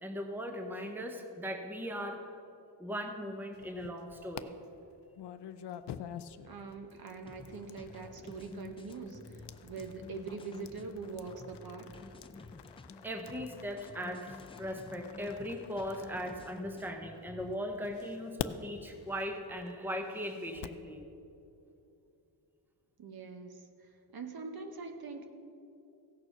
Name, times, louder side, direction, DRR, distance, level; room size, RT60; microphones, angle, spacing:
voice 1, 0.0-2.2 2.8-4.5 13.0-21.0, equal, 5° right, 4 dB, 0.9 m, -39 dB
sound 1, 3.5-4.4 5.1-17.2 17.8-20.9, left 10 dB, 70° left, 0.6 m, -47 dB
voice 2, 6.5-11.9 23.0-25.3, right 4 dB, 55° right, 6 dB, 1.1 m, -43 dB
sound 2, 7.2-17.6, left 3 dB, 15° left, 0.4 m, -50 dB
16.0 x 6.7 x 6.0 m, 2.7 s
wide cardioid pair, 130°, 42 cm